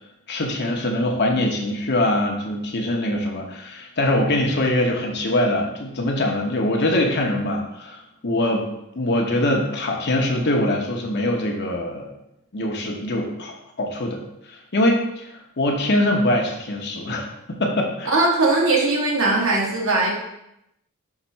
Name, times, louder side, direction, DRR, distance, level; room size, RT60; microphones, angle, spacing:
voice 1, 0.3-8.7 9.0-12.1 12.5-14.2 14.5-15.3 15.6-18.1, left 1 dB, 50° left, 1 dB, 1.0 m, -23 dB
voice 2, 18.0-20.1, right 2 dB, 60° right, -2 dB, 1.6 m, -19 dB
5.8 x 3.1 x 5.6 m, 0.84 s
head